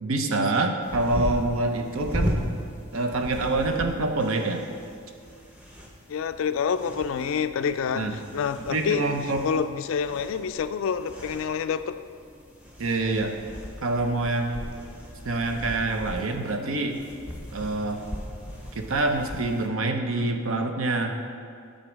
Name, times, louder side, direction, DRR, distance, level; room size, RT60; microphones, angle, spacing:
voice 1, 0.0-2.4 2.9-4.6 7.9-8.1 8.7-9.4 12.8-13.3 13.8-14.6 15.2-17.0 17.5-18.0 18.7-21.1, right 2 dB, 75° right, 5 dB, 0.7 m, -26 dB
sound 1, 0.8-19.7, equal, 5° right, 0.7 m, -37 dB
voice 2, 6.1-9.0 9.4-12.0, left 6 dB, 65° left, 12 dB, 0.3 m, -27 dB
9.0 x 4.1 x 6.2 m, 2.3 s
head